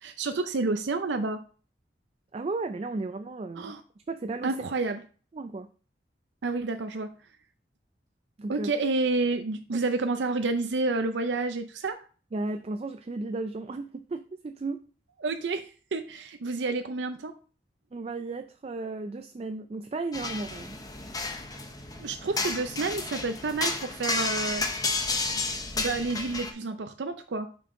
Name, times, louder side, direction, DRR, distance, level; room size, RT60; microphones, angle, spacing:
voice 1, 0.0-1.4 3.6-3.8 4.4-5.0 6.4-7.1 8.5-12.0 15.2-17.3 22.0-24.7 25.8-27.5, right 3 dB, 85° right, 7 dB, 0.6 m, -29 dB
voice 2, 2.3-4.5 5.3-5.7 8.4-8.7 12.3-14.8 17.9-20.8, right 3 dB, 35° right, 8 dB, 0.3 m, -34 dB
sound 1, 20.1-26.5, left 3 dB, 20° left, 0.7 m, -32 dB
5.8 x 5.3 x 3.7 m, 0.38 s
head